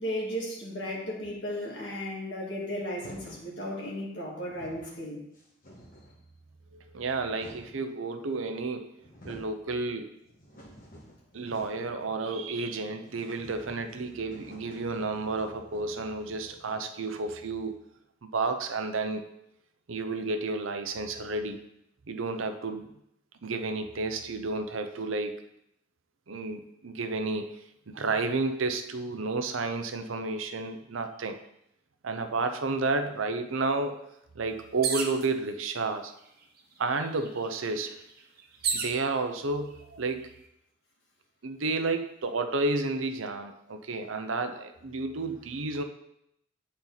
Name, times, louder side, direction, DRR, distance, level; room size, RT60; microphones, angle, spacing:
voice 1, 0.0-5.2, equal, 60° left, -4 dB, 2.1 m, -35 dB
sound 1, 3.0-3.5 4.1-4.2 4.4-5.0 5.3-6.2 6.9-7.8 8.6-8.7 9.0-9.6 10.0-11.9 12.2-12.3 12.6-12.7 13.1-17.6, equal, 45° left, 1.6 m, -51 dB
voice 2, 6.7-8.9 9.2-10.1 11.3-17.8 18.2-19.2 19.9-21.6 22.1-22.9 23.4-25.4 26.3-27.5 27.9-31.4 32.0-34.0 34.3-36.1 36.8-38.0 38.7-40.3 41.4-45.8, right 3 dB, 85° right, 7 dB, 0.7 m, -31 dB
sound 2, 34.8-35.3 36.2-36.3 36.6-39.0 39.8-40.3, right 5 dB, 50° right, 0.8 m, -33 dB
8.8 x 4.3 x 4.0 m, 0.79 s
head